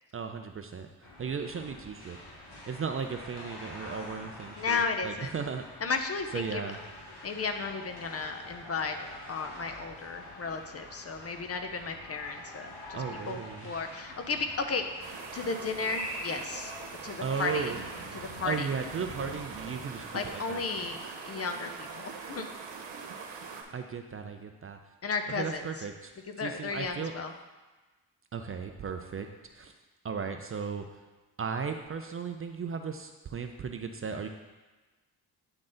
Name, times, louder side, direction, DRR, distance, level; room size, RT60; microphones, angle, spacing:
voice 1, 0.1-2.2 2.5-5.6 6.3-6.8 12.9-13.7 17.2-17.8 18.4-20.6 23.3-24.9 25.4-26.1 26.4-27.1 28.3-29.3 29.5-29.7 30.0-30.9 31.4-34.3, right 6 dB, 35° right, 6 dB, 0.4 m, -36 dB
sound 1, 1.0-20.0, left 1 dB, 65° left, 1.9 m, -46 dB
voice 2, 4.6-5.3 5.8-6.7 7.2-9.0 9.3-14.9 15.3-16.7 17.0-17.7 18.1-18.7 20.1-22.5 25.0-25.6 26.4-27.3, left 4 dB, 35° left, 6 dB, 0.6 m, -34 dB
sound 2, 15.0-23.6, right 5 dB, 85° right, 1.0 m, -43 dB
8.9 x 3.9 x 3.8 m, 1.2 s
cardioid pair, 95°, 43 cm